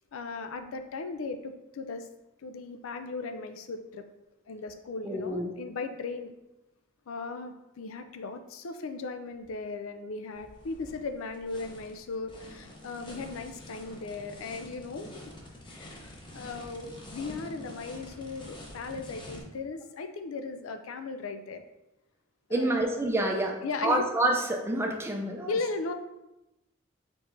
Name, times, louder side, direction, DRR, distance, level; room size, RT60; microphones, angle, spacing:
voice 1, 0.1-2.1 2.4-4.1 4.5-6.3 7.1-15.1 15.7-21.6 22.5-22.8 23.6-24.0 25.5-25.9, left 3 dB, 85° left, 7 dB, 0.4 m, -37 dB
voice 2, 5.0-5.5 22.5-25.5, right 1 dB, 10° right, 1 dB, 0.5 m, -28 dB
sound 1, 10.3-19.4, left 1 dB, 25° left, 0.7 m, -47 dB
4.6 x 4.4 x 2.6 m, 0.96 s
head